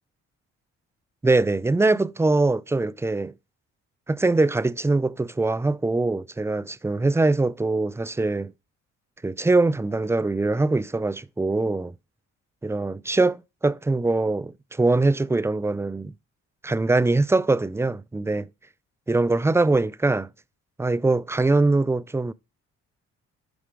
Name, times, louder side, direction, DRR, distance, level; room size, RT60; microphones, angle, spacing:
voice 1, 1.2-3.3 4.1-8.5 9.2-11.9 12.6-16.1 16.6-18.5 19.1-20.3 20.8-22.3, right 2 dB, 10° right, 0.4 m, -22 dB
11.5 x 4.9 x 4.8 m
cardioid pair, 90°, 30 cm